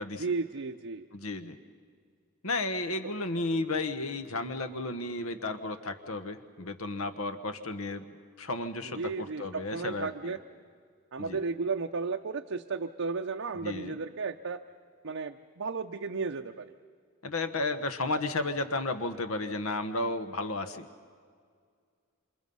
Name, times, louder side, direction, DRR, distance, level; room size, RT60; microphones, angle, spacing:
voice 1, 0.2-1.1 8.9-10.4 11.1-14.6 15.0-16.7, right 4 dB, 65° right, 3 dB, 0.7 m, -34 dB
voice 2, 1.1-1.6 2.4-10.4 11.2-11.4 13.6-13.9 17.2-20.9, left 2 dB, 75° left, 10 dB, 1.3 m, -33 dB
27.5 x 27.0 x 5.5 m, 2.1 s
head